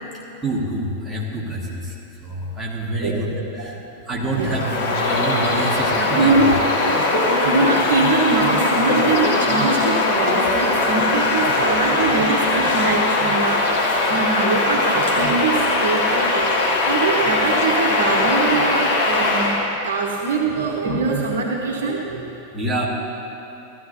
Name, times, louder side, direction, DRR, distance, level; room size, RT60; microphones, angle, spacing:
voice 1, 0.4-2.0 2.2-3.8 4.1-6.5 22.5-22.9, right 1 dB, 10° right, -5 dB, 2.0 m, -26 dB
voice 2, 3.0-3.7 4.3-4.6 6.1-6.6 6.9-22.3, right 3 dB, 60° right, 0 dB, 1.0 m, -23 dB
Bird vocalization bird call bird song, 4.4-19.7, left 2 dB, 50° left, 1.5 m, -20 dB
15.0 x 12.5 x 2.8 m, 3.0 s
figure-of-eight pair, 90°, 0 cm